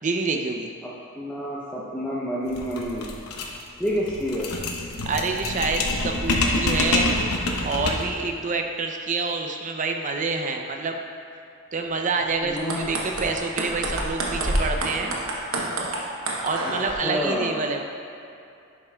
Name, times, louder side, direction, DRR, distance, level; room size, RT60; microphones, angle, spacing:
voice 1, 0.0-0.7 5.1-7.1 7.6-11.0 11.7-15.1 16.4-17.8, right 3 dB, 35° right, 3 dB, 0.5 m, -27 dB
voice 2, 1.1-3.1 3.8-4.5 12.4-12.9 16.6-16.7 17.0-17.6, equal, 5° left, -7 dB, 0.6 m, -28 dB
sound 1, 2.5-8.2, left 2 dB, 75° left, 0.8 m, -26 dB
sound 2, 12.4-16.9, right 2 dB, 60° right, 1.0 m, -28 dB
10.5 x 7.3 x 2.3 m, 2.5 s
head